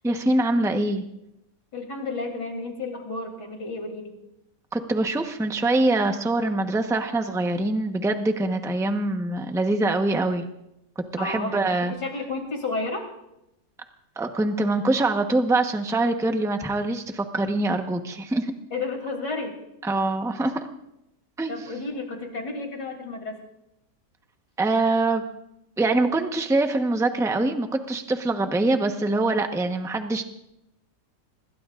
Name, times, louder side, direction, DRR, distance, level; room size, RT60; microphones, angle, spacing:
voice 1, 0.0-1.0 4.7-10.5 11.1-11.9 14.2-18.5 19.8-20.7 21.4-21.5 24.6-25.2 25.8-30.2, right 2 dB, ahead, 5 dB, 0.8 m, -24 dB
voice 2, 1.7-4.1 11.2-11.6 11.9-13.1 18.7-19.6 21.5-23.4, left 3 dB, 85° left, 2 dB, 3.8 m, -32 dB
26.5 x 21.0 x 2.5 m, 0.84 s
omnidirectional pair, 1.8 m